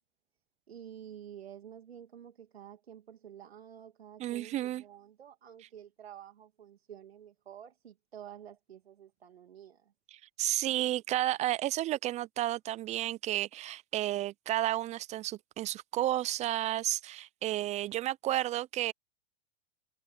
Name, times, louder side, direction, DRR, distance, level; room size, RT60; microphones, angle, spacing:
voice 1, 0.7-9.9, right 9 dB, 85° right, 2.6 m, -50 dB
voice 2, 4.2-4.8 10.1-18.9, right 14 dB, 25° right, 0.5 m, -32 dB
hypercardioid pair, 110°, 30 cm